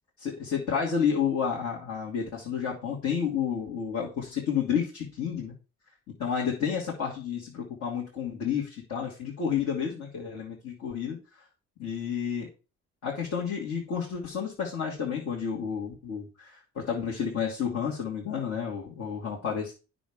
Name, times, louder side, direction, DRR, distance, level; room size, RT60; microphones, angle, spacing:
voice 1, 0.2-5.5 6.2-11.2 11.8-12.5 13.0-19.7, left 7 dB, 65° left, -3 dB, 2.5 m, -30 dB
9.2 x 6.4 x 3.7 m, 0.32 s
cardioid pair, 90°, 30 cm